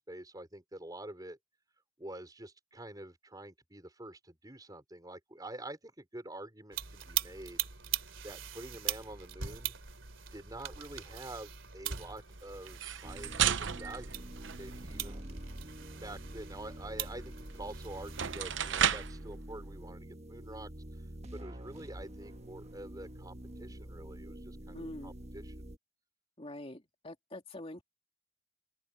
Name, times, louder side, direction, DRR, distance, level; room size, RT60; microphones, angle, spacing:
voice 1, 0.0-1.4 2.0-7.7 8.2-9.7 10.3-14.3 14.6-15.4 16.0-21.0 21.3-25.5, right 1 dB, 20° right, 5.0 m, -47 dB
sound 1, 6.7-19.1, right 10 dB, 85° right, 2.9 m, -41 dB
sound 2, 12.7-15.1 17.5-17.6 18.0-19.2, right 9 dB, 70° right, 0.8 m, -33 dB
sound 3, 13.0-25.8, right 1 dB, 35° right, 1.3 m, -46 dB
voice 2, 24.7-25.1 26.4-27.8, left 1 dB, 30° left, 2.7 m, -44 dB
open air
head